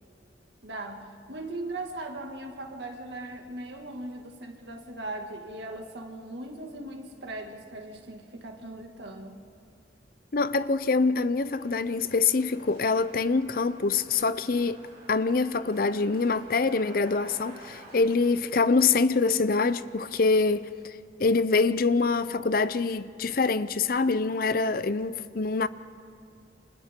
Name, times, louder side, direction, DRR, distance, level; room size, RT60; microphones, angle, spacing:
voice 1, 0.6-9.4, right 2 dB, 75° right, 2.1 m, -39 dB
voice 2, 10.3-14.8 15.1-20.9 21.2-25.7, left 4 dB, 50° left, 0.6 m, -25 dB
sound 1, 11.4-20.5, right 1 dB, 35° right, 6.1 m, -52 dB
29.5 x 26.5 x 3.7 m
head